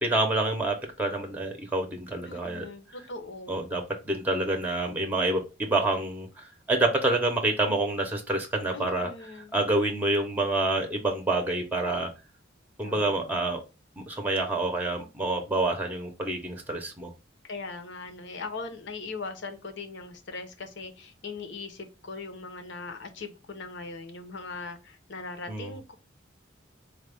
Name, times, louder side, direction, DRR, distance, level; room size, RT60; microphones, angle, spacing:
voice 1, 0.0-2.7 3.5-9.1 9.5-12.1 12.8-13.6 14.0-17.1 25.5-25.8, right 2 dB, 10° right, 0.8 m, -27 dB
voice 2, 2.3-3.7 8.7-9.5 12.8-13.3 17.4-25.9, left 3 dB, 65° left, 0.9 m, -40 dB
4.4 x 2.4 x 3.4 m
head